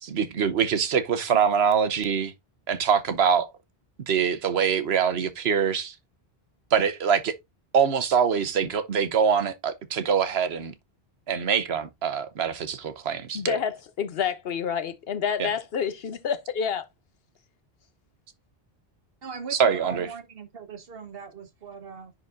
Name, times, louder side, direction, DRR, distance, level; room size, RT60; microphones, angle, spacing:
voice 1, 0.0-2.3 2.7-3.5 4.1-5.9 6.7-7.3 7.7-10.7 11.3-13.6 15.4-15.5 19.5-20.1, right 7 dB, 85° right, 1.1 m, -24 dB
voice 2, 13.3-16.9, left 7 dB, 70° left, 1.0 m, -28 dB
voice 3, 19.2-22.1, right 5 dB, 65° right, 1.4 m, -40 dB
10.0 x 4.0 x 2.5 m
omnidirectional pair, 1.0 m